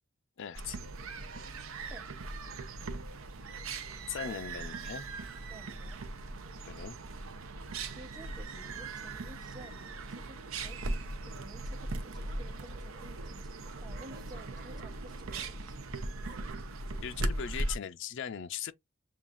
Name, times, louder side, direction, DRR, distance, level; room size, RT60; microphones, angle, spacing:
voice 1, 0.4-0.8 4.1-5.1 6.7-7.0 17.0-18.7, left 8 dB, 60° left, 0.4 m, -39 dB
sound 1, 0.5-17.8, right 2 dB, 85° right, 0.7 m, -39 dB
voice 2, 5.5-6.0 7.9-15.8, right 1 dB, 20° right, 1.0 m, -53 dB
sound 2, 10.6-11.0 11.9-15.8 16.1-16.5, right 5 dB, 60° right, 0.9 m, -54 dB
7.1 x 2.4 x 2.5 m
head